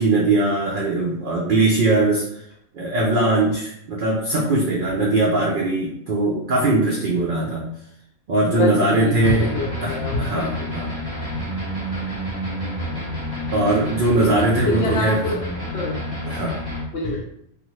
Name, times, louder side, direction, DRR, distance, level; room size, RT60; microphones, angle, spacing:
voice 1, 0.0-2.4 2.7-7.6 8.3-9.4 9.8-11.1 13.5-15.2 16.3-16.6, right 2 dB, 70° right, -4 dB, 0.5 m, -20 dB
voice 2, 8.5-10.2 10.6-10.7 13.7-15.4 15.7-16.0 16.9-17.3, left 3 dB, 65° left, -2 dB, 0.7 m, -26 dB
sound 1, 9.2-16.8, equal, 25° left, 0.6 m, -29 dB
2.6 x 2.4 x 3.0 m, 0.74 s
omnidirectional pair, 1.5 m